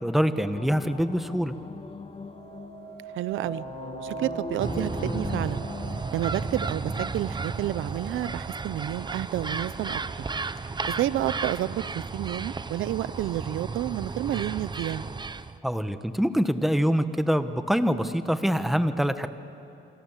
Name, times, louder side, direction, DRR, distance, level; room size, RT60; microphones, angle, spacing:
voice 1, 0.0-1.5 15.6-19.3, equal, ahead, 10 dB, 1.3 m, -25 dB
sound 1, 0.5-8.2, left 4 dB, 30° left, 1.8 m, -40 dB
sound 2, 2.2-11.4 11.9-12.4, right 6 dB, 60° right, 3.8 m, -45 dB
voice 2, 3.1-3.6 4.0-5.7 6.1-10.0 10.9-15.1, right 13 dB, 85° right, 17 dB, 0.8 m, -30 dB
sound 3, 4.6-15.6, right 4 dB, 20° right, 0.8 m, -33 dB
28.5 x 26.0 x 7.4 m, 2.7 s
cardioid pair, 90°, 20 cm